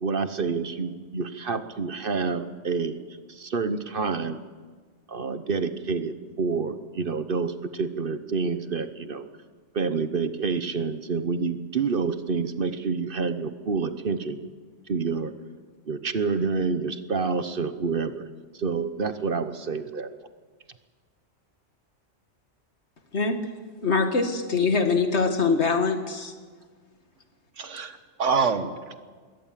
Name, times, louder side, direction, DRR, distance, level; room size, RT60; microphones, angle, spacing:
voice 1, 0.0-3.0 3.3-4.4 5.1-9.3 9.7-14.4 14.9-15.3 15.9-18.3 18.5-20.1, right 5 dB, 50° right, 11 dB, 1.1 m, -28 dB
voice 2, 23.8-26.3, left 4 dB, 65° left, 6 dB, 2.1 m, -23 dB
voice 3, 27.6-29.0, right 5 dB, 80° right, 10 dB, 1.6 m, -26 dB
21.0 x 18.0 x 7.5 m, 1.5 s
omnidirectional pair, 1.2 m